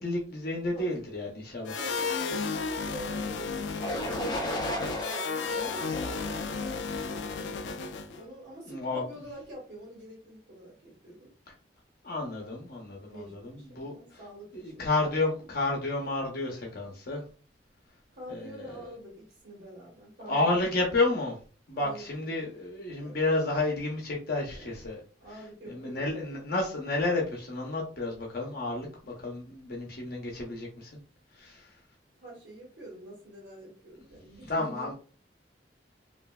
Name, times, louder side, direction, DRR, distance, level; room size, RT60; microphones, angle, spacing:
voice 1, 0.0-1.8 5.5-5.9 8.1-8.3 8.7-9.0 12.0-14.2 14.5-17.2 18.3-18.9 20.3-21.4 21.7-25.0 25.7-30.9 31.4-31.7 34.4-34.9, left 2 dB, 60° left, -1 dB, 0.7 m, -31 dB
sound 1, 1.7-8.2, left 4 dB, 85° left, 0.3 m, -33 dB
voice 2, 1.8-7.6 8.2-11.3 13.1-14.9 18.1-20.7 21.7-22.5 23.0-23.2 24.5-24.7 25.2-26.1 32.2-34.9, right 1 dB, 75° right, -4 dB, 1.2 m, -47 dB
sound 2, 3.8-7.7, left 1 dB, 25° left, 0.5 m, -35 dB
3.1 x 2.5 x 2.3 m, 0.38 s
head